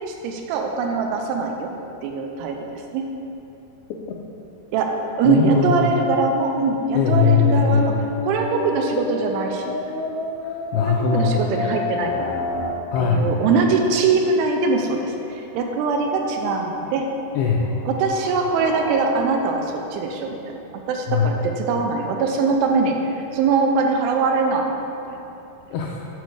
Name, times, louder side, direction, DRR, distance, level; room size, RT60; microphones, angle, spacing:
voice 1, 0.0-1.7 2.0-3.1 4.7-4.9 5.2-7.9 8.2-9.9 10.8-12.3 13.0-17.1 17.9-20.4 20.9-25.2, right 4 dB, 85° right, 3 dB, 2.6 m, -22 dB
voice 2, 5.3-5.8 6.9-7.9 10.4-11.4 12.9-13.3 17.3-17.7 21.1-21.3 25.7-26.0, left 7 dB, 90° left, -1 dB, 2.2 m, -20 dB
sound 1, 5.3-12.7, left 2 dB, 70° left, 1.9 m, -29 dB
sound 2, 17.2-21.0, left 1 dB, 45° right, 1.6 m, -38 dB
8.4 x 4.7 x 4.7 m, 2.9 s
omnidirectional pair, 5.0 m